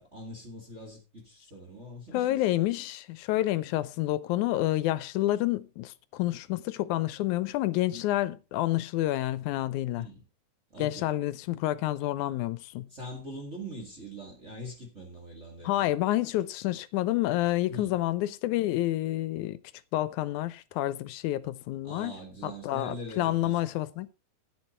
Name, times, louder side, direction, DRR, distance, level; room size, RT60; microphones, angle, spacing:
voice 1, 0.0-2.5 10.0-10.2 10.7-11.1 12.9-15.9 17.7-17.9 21.8-23.6, equal, 25° right, 2.2 m, -42 dB
voice 2, 2.1-10.1 10.8-12.9 15.6-19.6 19.9-22.2 22.4-24.1, left 15 dB, 80° left, 2.1 m, -29 dB
10.5 x 8.5 x 4.3 m
omnidirectional pair, 3.5 m